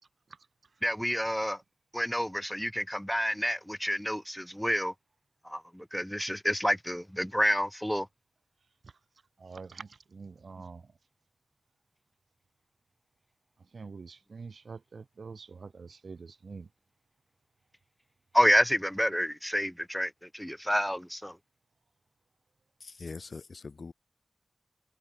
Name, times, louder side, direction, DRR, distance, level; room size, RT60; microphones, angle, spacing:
voice 1, 0.3-0.8 1.3-1.4 8.8-9.0 9.4-11.0 13.6-16.7, right 4 dB, 80° right, 7.7 m, -46 dB
voice 2, 0.8-1.6 1.9-4.9 5.4-8.1 18.3-21.4, equal, ahead, 0.9 m, -29 dB
voice 3, 22.8-23.9, left 4 dB, 65° left, 6.7 m, -43 dB
wide cardioid pair, 80°, 0 cm